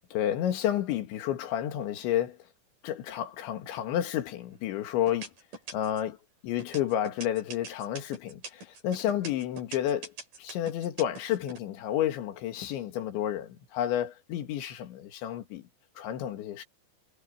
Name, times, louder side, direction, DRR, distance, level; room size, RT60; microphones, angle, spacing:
voice 1, 0.1-2.4 2.8-5.3 5.7-6.2 6.4-10.1 10.4-15.6 16.0-16.6, left 11 dB, 80° left, 4.3 m, -30 dB
sound 1, 4.1-4.6 5.1-6.1 6.6-11.6, right 3 dB, 45° right, 8.5 m, -43 dB
omnidirectional pair, 5.2 m